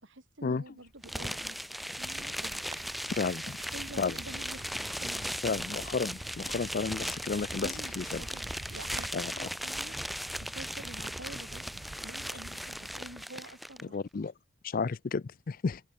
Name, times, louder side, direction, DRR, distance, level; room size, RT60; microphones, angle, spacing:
voice 1, 0.0-1.7 2.0-2.6 3.7-4.6 4.9-5.4 7.6-10.0 10.4-11.6 12.0-14.0, right 1 dB, 65° right, 3.8 m, -48 dB
sound 1, 1.0-13.8, equal, ahead, 0.6 m, -38 dB
Rain, 1.9-9.1, right 2 dB, 20° right, 2.0 m, -50 dB
voice 2, 3.2-3.6 4.0-4.2 5.4-8.2 9.1-9.5 13.9-14.3 14.6-15.8, left 4 dB, 45° left, 0.4 m, -32 dB
sound 2, 3.7-13.3, right 1 dB, 50° right, 1.5 m, -49 dB
open air
head